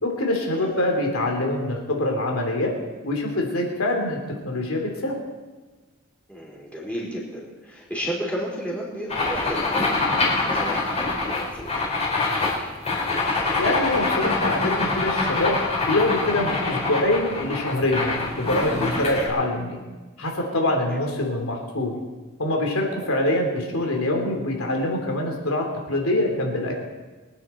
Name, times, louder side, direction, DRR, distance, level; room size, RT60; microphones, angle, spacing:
voice 1, 0.0-2.7 3.0-5.2 13.6-19.8 20.2-21.9 22.4-26.7, left 1 dB, 85° left, 1 dB, 3.2 m, -24 dB
voice 2, 6.3-12.2 20.9-21.0, equal, 5° left, -4 dB, 4.4 m, -33 dB
sound 1, 9.1-19.3, left 3 dB, 30° left, 4.2 m, -25 dB
24.5 x 9.6 x 4.4 m, 1.3 s
head